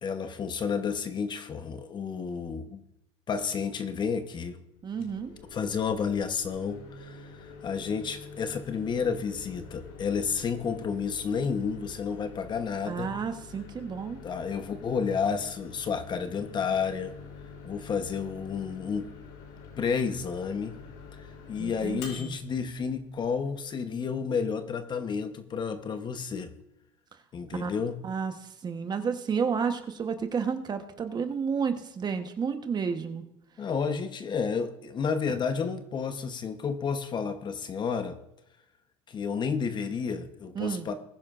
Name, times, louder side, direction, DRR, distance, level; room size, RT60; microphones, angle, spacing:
voice 1, 0.0-2.8 3.3-4.6 5.5-13.1 14.2-17.2 17.6-19.1 19.8-20.8 21.1-26.5 27.3-28.0 33.6-38.2 39.1-40.9, left 6 dB, 30° left, 9 dB, 1.0 m, -31 dB
Microwave oven, 4.8-23.6, left 5 dB, 70° left, 3.3 m, -47 dB
voice 2, 4.8-5.3 12.9-14.2 21.6-22.3 27.5-27.7 28.0-33.2 40.5-40.9, right 6 dB, 30° right, 7 dB, 1.1 m, -31 dB
20.5 x 10.5 x 2.5 m, 0.80 s
supercardioid pair, 110°, 15 cm